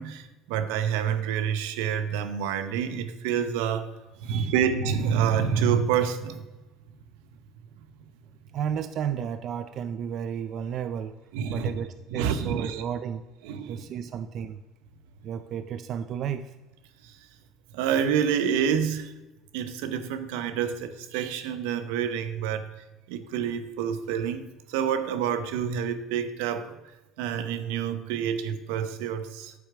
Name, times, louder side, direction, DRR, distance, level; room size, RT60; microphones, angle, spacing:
voice 1, 0.0-3.9 4.2-6.5 11.3-11.7 12.1-12.8 13.4-13.8 17.0-17.2 17.7-19.1 19.5-22.7 23.1-26.8 27.2-29.5, right 8 dB, 90° right, 10 dB, 0.8 m, -28 dB
voice 2, 4.2-4.6 8.5-11.1 11.5-13.2 13.7-14.6 15.2-16.6, right 8 dB, 50° right, 11 dB, 0.4 m, -33 dB
8.7 x 7.1 x 4.9 m, 1.1 s
cardioid pair, 115°, 0 cm